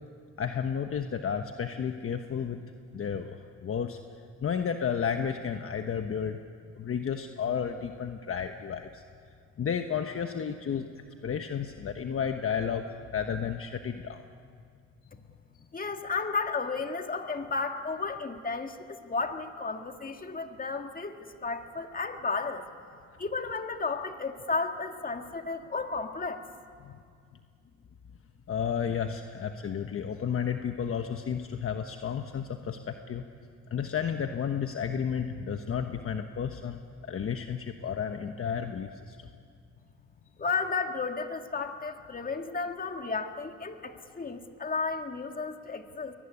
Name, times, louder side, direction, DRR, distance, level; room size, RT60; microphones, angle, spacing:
voice 1, 0.4-2.6 2.9-4.0 4.4-6.4 6.7-9.0 9.6-10.9 11.2-14.2 26.8-26.9 28.5-33.2 33.7-39.3, left 7 dB, 45° left, 6 dB, 1.2 m, -32 dB
voice 2, 15.7-22.6 23.2-26.4 40.4-46.1, left 4 dB, 30° left, 5 dB, 1.9 m, -33 dB
22.0 x 19.0 x 9.8 m, 2.2 s
cardioid pair, 90°, 30 cm